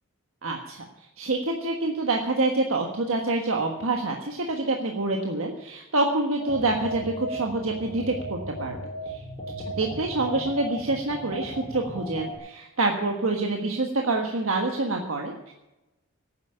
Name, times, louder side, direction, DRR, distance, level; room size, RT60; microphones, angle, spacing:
voice 1, 0.4-0.8 1.2-8.7 9.1-9.2 9.8-15.5, right 2 dB, 90° right, 2 dB, 1.4 m, -26 dB
sound 1, 6.4-12.4, right 1 dB, 20° left, 4.7 m, -36 dB
11.5 x 9.5 x 8.7 m, 0.98 s
head